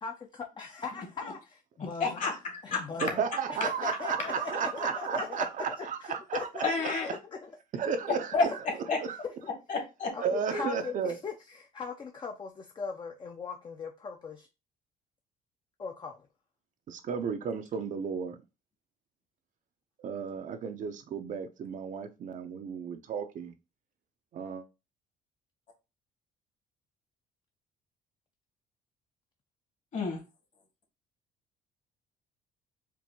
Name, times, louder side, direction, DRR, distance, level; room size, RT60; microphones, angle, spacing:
voice 1, 0.0-2.2 2.6-3.2 3.5-5.5 5.8-7.2 7.4-7.5 8.3-8.4 9.2-9.3 10.1-14.5 15.8-16.3, left 5 dB, 25° left, 0.5 m, -39 dB
voice 2, 2.0-2.8 6.6-7.1 8.3-8.4 8.9-9.0 9.7-10.1 29.9-30.2, left 4 dB, 50° left, 1.7 m, -29 dB
voice 3, 3.0-7.2 7.7-8.5 9.0-9.2 10.2-11.2 16.9-18.4 20.0-23.5 24.3-24.6, right 6 dB, 50° right, 0.5 m, -33 dB
4.5 x 2.5 x 2.8 m
cardioid pair, 110°, 17 cm